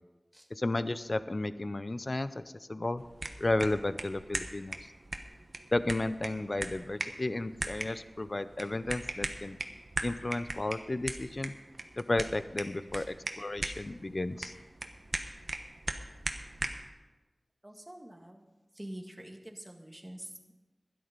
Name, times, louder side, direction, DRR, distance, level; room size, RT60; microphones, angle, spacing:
voice 1, 0.5-2.4 2.7-3.0 3.4-4.9 5.7-9.6 10.0-11.5 12.0-14.5, left 2 dB, 45° left, 13 dB, 0.6 m, -33 dB
sound 1, 3.0-16.9, right 2 dB, 55° right, 1.1 m, -40 dB
voice 2, 17.6-18.5 18.7-20.5, right 1 dB, 15° right, 3 dB, 1.8 m, -46 dB
12.5 x 11.0 x 5.3 m, 1.2 s
wide cardioid pair, 60°, 0 cm